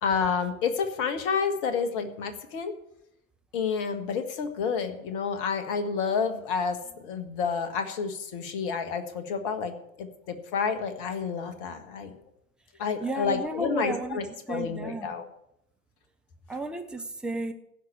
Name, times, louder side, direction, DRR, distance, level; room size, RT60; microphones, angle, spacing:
voice 1, 0.0-2.7 3.5-12.2 12.8-15.3, left 6 dB, 40° left, 9 dB, 1.6 m, -30 dB
voice 2, 13.0-14.2 14.5-15.2 16.5-17.5, right 2 dB, ahead, 3 dB, 0.6 m, -33 dB
15.5 x 5.9 x 8.5 m, 0.78 s
figure-of-eight pair, 100°, 42 cm